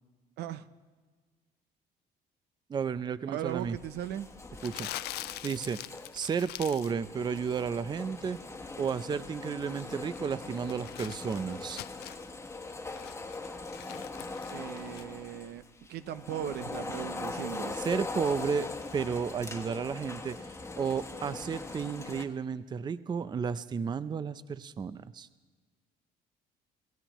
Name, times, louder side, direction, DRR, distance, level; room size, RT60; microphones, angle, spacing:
voice 1, 2.7-3.8 4.6-4.9 5.4-5.8 6.1-8.4 8.8-11.8 17.8-25.3, right 6 dB, 25° right, 15 dB, 0.4 m, -33 dB
voice 2, 3.3-4.3 14.5-15.6 15.9-17.8, right 11 dB, 75° right, 12 dB, 0.7 m, -38 dB
sound 1, 3.5-22.2, left 3 dB, 15° left, 1.3 m, -41 dB
Crumpling crinkling, 4.6-7.0 7.3-7.7 9.4-12.3 12.7-15.0, left 15 dB, 70° left, 0.4 m, -44 dB
27.0 x 16.0 x 3.0 m, 1.4 s
cardioid pair, 110°, 17 cm